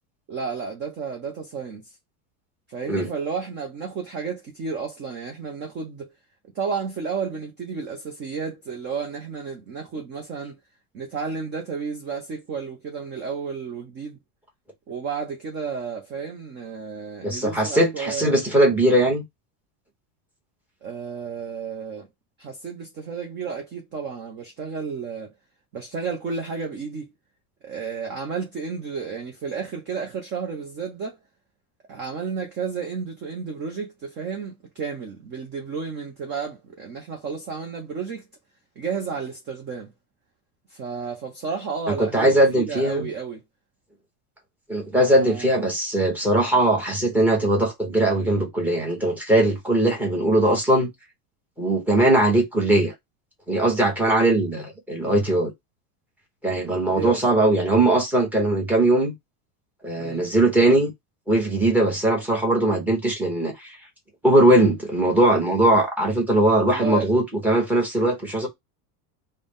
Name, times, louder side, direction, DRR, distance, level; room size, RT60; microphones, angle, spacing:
voice 1, 0.3-1.9 2.7-6.1 6.5-10.6 10.9-14.2 14.9-18.4 20.8-22.1 22.4-25.3 25.7-27.1 27.6-31.2 31.9-38.3 38.8-39.9 40.7-43.4 44.9-45.5 55.0-55.2 56.9-57.5 60.0-60.2 66.6-67.1, right 5 dB, 25° right, 0.5 m, -32 dB
voice 2, 17.2-19.2 42.0-43.1 44.7-50.9 51.6-52.9 53.5-55.5 56.4-59.1 59.8-60.9 61.3-63.8 64.2-68.5, right 1 dB, 5° right, 0.8 m, -20 dB
3.8 x 2.1 x 3.5 m
supercardioid pair, 160°, 44 cm